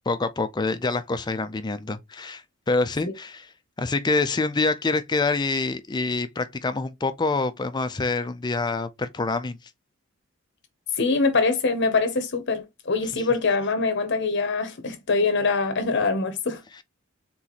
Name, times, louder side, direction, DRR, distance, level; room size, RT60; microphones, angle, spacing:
voice 1, 0.1-3.5 3.8-9.6 13.1-13.3, left 3 dB, 20° left, 0.4 m, -26 dB
voice 2, 10.9-16.6, left 4 dB, 55° left, 0.8 m, -24 dB
3.8 x 2.9 x 4.0 m
head